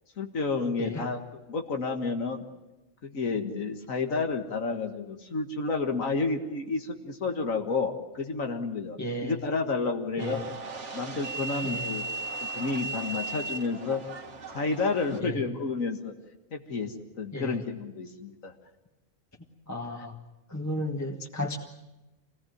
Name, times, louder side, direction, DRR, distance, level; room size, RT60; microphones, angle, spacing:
voice 1, 0.2-2.4 3.0-10.4 10.9-12.0 12.5-14.0 14.5-16.1 16.5-18.5 20.0-20.1, left 4 dB, 85° left, 4 dB, 2.1 m, -30 dB
voice 2, 9.0-9.4 10.2-10.4 11.6-11.9 15.2-15.4 17.3-17.6 19.7-20.1 20.5-21.6, left 1 dB, 15° left, 1 dB, 1.6 m, -33 dB
sound 1, 10.2-15.2, right 3 dB, 65° right, 2.1 m, -37 dB
26.5 x 18.5 x 9.4 m, 1.0 s
omnidirectional pair, 1.4 m